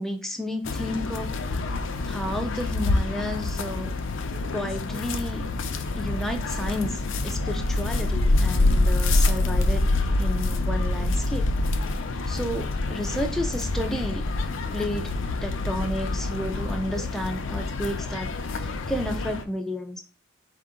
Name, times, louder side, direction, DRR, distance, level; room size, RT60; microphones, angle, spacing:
voice 1, 0.0-1.3 2.0-3.9 4.5-5.4 6.0-9.9 10.2-11.5 12.3-14.2 14.7-15.1 15.4-20.0, equal, ahead, 4 dB, 0.4 m, -32 dB
sound 1, 0.6-19.4, left 2 dB, 70° left, 0.5 m, -26 dB
4.3 x 2.8 x 3.6 m, 0.35 s
head